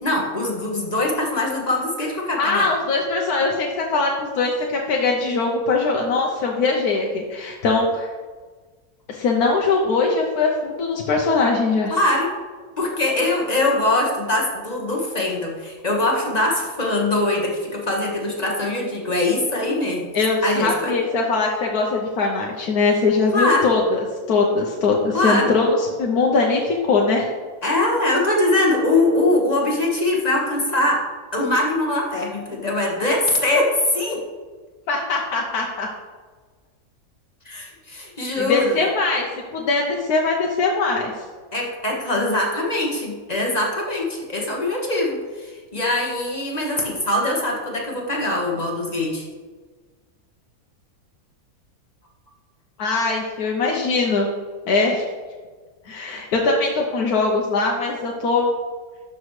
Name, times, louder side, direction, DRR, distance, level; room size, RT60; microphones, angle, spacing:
voice 1, 0.0-2.7 11.9-12.3 12.8-20.1 20.4-21.0 23.3-23.7 25.1-25.5 27.6-31.0 31.3-34.2 37.4-38.8 41.5-49.2, left 2 dB, 30° left, -1 dB, 1.4 m, -22 dB
voice 2, 2.4-8.1 9.1-12.0 20.1-27.3 34.9-35.9 38.4-39.3 39.5-41.1 52.8-54.3 54.7-55.0 55.8-58.5, left 3 dB, 90° left, 0 dB, 1.4 m, -21 dB
12.0 x 6.3 x 3.2 m, 1.4 s
omnidirectional pair, 1.6 m